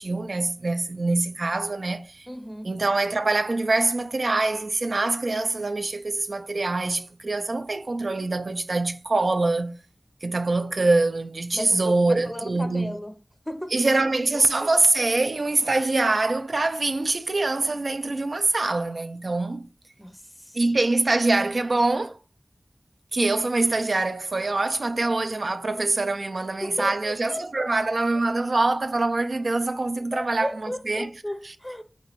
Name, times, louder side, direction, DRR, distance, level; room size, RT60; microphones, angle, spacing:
voice 1, 0.0-2.3 2.6-9.8 10.2-12.9 13.7-19.7 20.5-22.2 23.1-31.1, right 2 dB, 80° right, 0.4 m, -24 dB
voice 2, 2.3-2.7 11.5-13.1 13.5-13.7 14.3-14.7 20.0-20.6 26.6-27.7 30.1-31.8, equal, 10° left, 0.5 m, -35 dB
4.5 x 3.0 x 2.9 m
wide cardioid pair, 55°, 0 cm